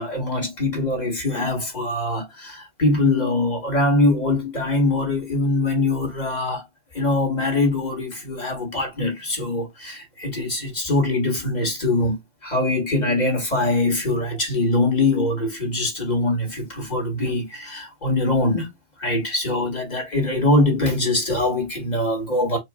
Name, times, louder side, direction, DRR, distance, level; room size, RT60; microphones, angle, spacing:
voice 1, 0.0-6.6 6.9-12.2 12.4-18.7 19.0-22.6, left 2 dB, 35° left, 2.0 m, -23 dB
4.7 x 2.6 x 3.5 m
omnidirectional pair, 1.2 m